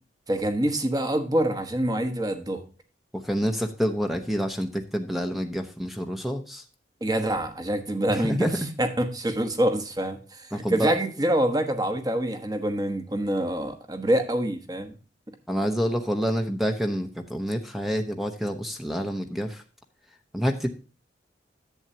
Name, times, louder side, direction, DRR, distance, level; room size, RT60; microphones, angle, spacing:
voice 1, 0.3-2.6 7.0-14.9, right 1 dB, 20° right, 7 dB, 1.2 m, -26 dB
voice 2, 3.1-6.6 8.1-8.7 10.5-10.9 15.5-19.6 20.3-20.7, equal, ahead, 5 dB, 0.8 m, -28 dB
10.5 x 8.0 x 2.8 m, 0.35 s
head